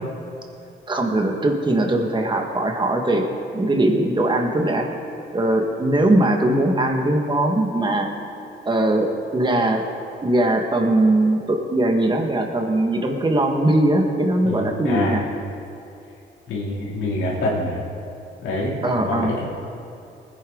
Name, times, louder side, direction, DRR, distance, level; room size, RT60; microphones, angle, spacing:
voice 1, 0.9-3.2 3.5-4.9 5.3-8.1 8.7-9.8 10.2-15.2 18.8-19.3, right 1 dB, 25° right, 2 dB, 1.8 m, -20 dB
voice 2, 14.4-15.2 16.5-17.8 18.4-19.4, left 2 dB, 90° left, -5 dB, 3.2 m, -26 dB
20.0 x 10.0 x 3.9 m, 2.7 s
cardioid pair, 90°, 20 cm